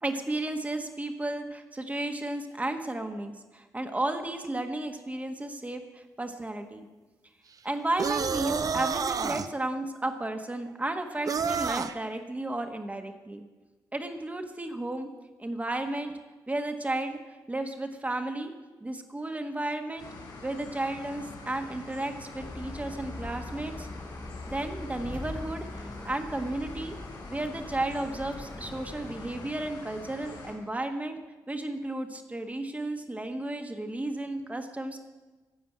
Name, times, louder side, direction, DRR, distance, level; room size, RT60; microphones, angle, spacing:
voice 1, 0.0-6.9 7.6-13.4 13.9-15.1 15.4-16.1 16.5-18.5 18.8-20.1 20.4-23.9 24.5-27.0 27.3-31.2 31.5-35.0, right 2 dB, 20° right, 5 dB, 1.5 m, -33 dB
sound 1, 8.0-9.5 11.3-11.9, right 6 dB, 50° right, 0.7 m, -29 dB
sound 2, 20.0-30.5, left 3 dB, 80° left, 4.6 m, -45 dB
sound 3, 22.4-29.5, left 2 dB, 15° left, 0.5 m, -42 dB
15.0 x 5.1 x 8.8 m, 1.2 s
cardioid pair, 60°, 8 cm